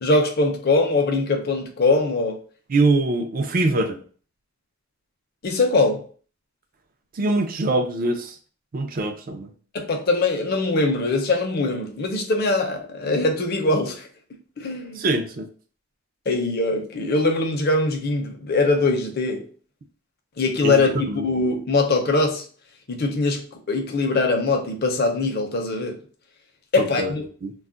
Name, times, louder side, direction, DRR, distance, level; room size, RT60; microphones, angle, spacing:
voice 1, 0.0-2.4 5.4-6.0 9.7-14.1 14.6-15.0 16.3-19.5 20.4-22.4 22.9-26.0 26.7-27.2, left 3 dB, 50° left, 0.6 m, -22 dB
voice 2, 2.7-4.0 7.1-8.3 8.7-9.5 15.0-15.5 20.6-21.2 26.8-27.1 27.4-27.5, right 2 dB, 45° right, 0.4 m, -23 dB
2.3 x 2.1 x 3.7 m
head